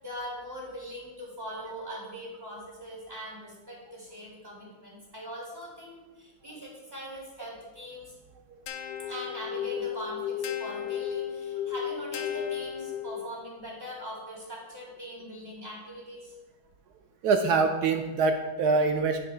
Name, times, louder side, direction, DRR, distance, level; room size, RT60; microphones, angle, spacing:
voice 1, 0.0-8.1 9.1-16.3, equal, 10° right, -5 dB, 2.4 m, -41 dB
sound 1, 8.7-13.4, left 9 dB, 75° left, 1.3 m, -34 dB
voice 2, 17.2-19.2, right 4 dB, 75° right, 5 dB, 0.9 m, -24 dB
9.1 x 8.3 x 2.3 m, 1.2 s
omnidirectional pair, 2.2 m